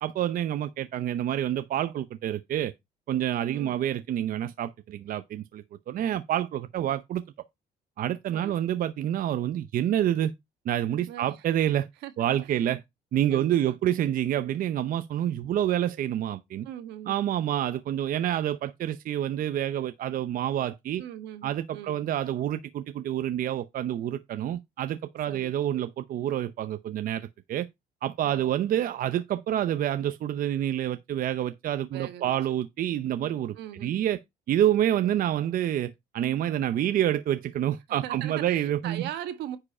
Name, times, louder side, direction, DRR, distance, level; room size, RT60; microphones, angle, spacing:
voice 1, 0.0-2.7 3.1-7.2 8.0-10.3 10.6-11.9 12.2-12.8 13.1-16.7 17.1-21.0 21.4-27.7 28.0-33.5 33.8-34.2 34.5-39.0, right 11 dB, 55° right, 0.7 m, -28 dB
voice 2, 3.5-3.8 8.3-8.8 11.1-11.4 12.0-12.3 13.3-13.8 16.6-17.2 21.0-22.0 25.3-25.5 28.2-28.5 31.9-32.3 33.5-34.0 37.9-39.6, right 11 dB, 85° right, 1.7 m, -40 dB
9.9 x 4.8 x 4.3 m
cardioid pair, 110°, 17 cm